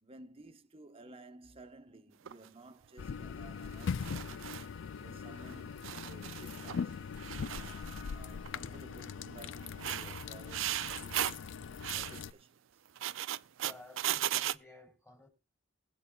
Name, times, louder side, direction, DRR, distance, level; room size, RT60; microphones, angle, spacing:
voice 1, 0.0-4.4 5.0-7.0 7.4-11.6 11.9-12.8, right 2 dB, 30° right, 1.1 m, -55 dB
sound 1, 2.3-2.5 3.7-4.7 5.4-5.5 5.8-6.9 7.2-8.1 8.5-8.8 9.6-11.4 11.8-12.2 12.9-14.6, right 12 dB, 75° right, 0.4 m, -37 dB
sound 2, 3.0-12.3, left 6 dB, 65° left, 0.4 m, -41 dB
voice 2, 13.6-15.3, left 2 dB, 10° left, 3.0 m, -55 dB
20.0 x 8.4 x 2.3 m
head